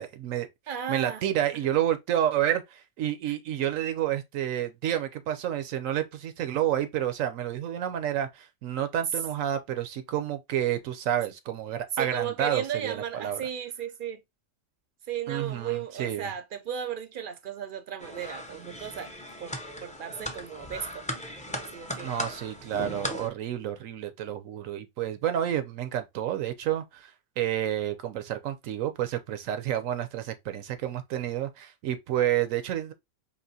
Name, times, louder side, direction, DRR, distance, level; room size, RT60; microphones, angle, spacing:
voice 1, 0.0-0.5 0.9-13.4 15.3-16.3 22.0-27.1 27.4-32.9, right 11 dB, 90° right, 1.1 m, -29 dB
voice 2, 0.7-1.2 3.3-3.4 11.9-14.2 15.1-19.1 19.4-21.2 21.5-22.1, right 9 dB, 55° right, 0.6 m, -35 dB
sound 1, 18.0-23.3, left 1 dB, 10° left, 0.3 m, -38 dB
4.7 x 2.9 x 2.7 m
omnidirectional pair, 1.3 m